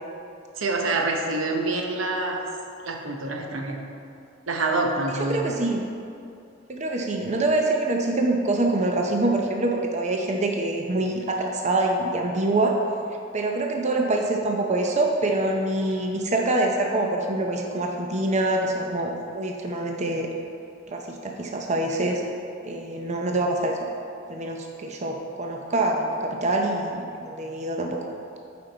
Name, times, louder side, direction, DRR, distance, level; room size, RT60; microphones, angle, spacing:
voice 1, 0.6-2.4 2.8-3.9 4.5-5.5, right 2 dB, 85° right, 2 dB, 0.8 m, -26 dB
voice 2, 5.3-5.8 6.7-12.8 13.3-20.3 20.9-22.2 22.6-23.8 24.3-28.0, right 2 dB, 35° right, 1 dB, 0.6 m, -25 dB
8.8 x 5.2 x 3.9 m, 2.6 s
head